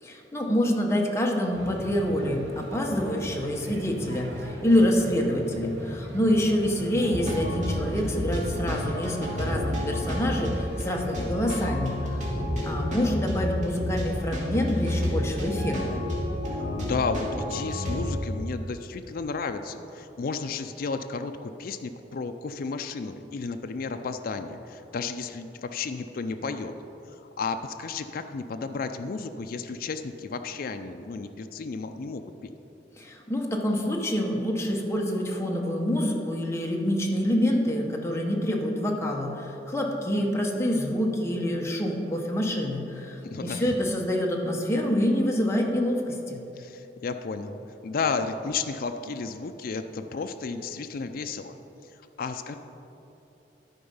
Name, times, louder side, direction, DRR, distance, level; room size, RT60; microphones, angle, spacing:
voice 1, 0.0-12.0 12.6-16.0 33.0-46.4, left 1 dB, 15° left, 0 dB, 1.0 m, -26 dB
sound 1, 1.5-11.3, right 1 dB, 80° right, 1.3 m, -40 dB
sound 2, 7.0-18.0, left 1 dB, 45° right, 2.1 m, -30 dB
voice 2, 16.5-26.7 27.1-32.5 43.2-43.8 46.6-51.6 51.8-51.9 52.2-52.6, left 4 dB, 55° left, 7 dB, 0.4 m, -33 dB
12.0 x 4.8 x 5.5 m, 2.9 s
head